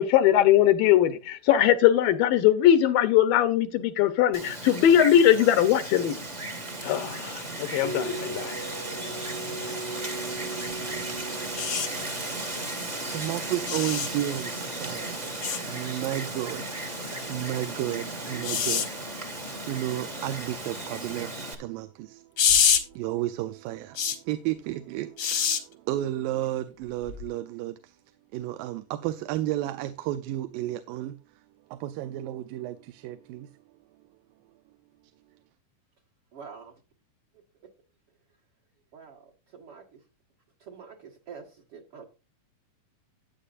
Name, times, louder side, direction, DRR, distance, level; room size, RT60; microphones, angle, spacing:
voice 1, 0.0-6.2 6.8-8.6, left 11 dB, 85° left, 2.6 m, -21 dB
Wind, 4.3-21.5, right 2 dB, 25° right, 0.8 m, -35 dB
sound 1, 7.8-18.9, right 2 dB, 35° left, 0.3 m, -42 dB
voice 2, 10.9-12.1 12.6-28.0 28.3-31.2 31.7-33.5, right 14 dB, 85° right, 2.4 m, -33 dB
sound 2, 11.6-11.9 13.7-14.1 15.4-15.6 18.4-18.9 22.4-22.8 24.0-24.2 25.2-25.6 27.1-27.2, left 7 dB, 55° left, 1.3 m, -24 dB
voice 3, 36.3-36.7 38.9-39.2 39.5-39.8 40.6-42.0, right 6 dB, 50° right, 2.0 m, -45 dB
13.0 x 9.4 x 2.5 m
omnidirectional pair, 4.0 m